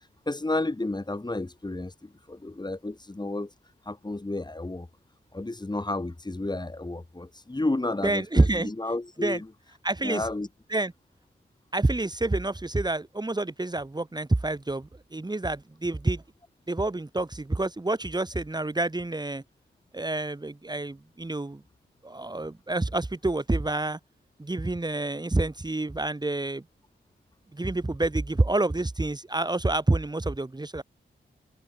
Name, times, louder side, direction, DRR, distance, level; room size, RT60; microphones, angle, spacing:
voice 1, 0.3-3.5 3.9-4.9 5.3-9.5 10.0-10.5, left 2 dB, 20° left, 4.4 m, -31 dB
voice 2, 8.0-8.7 9.2-9.4 9.8-10.3 10.7-10.9 11.7-16.2 16.7-19.4 19.9-21.6 22.0-24.0 24.4-26.6 27.5-30.8, right 2 dB, 20° right, 2.6 m, -28 dB
wide cardioid pair, 115°, 20 cm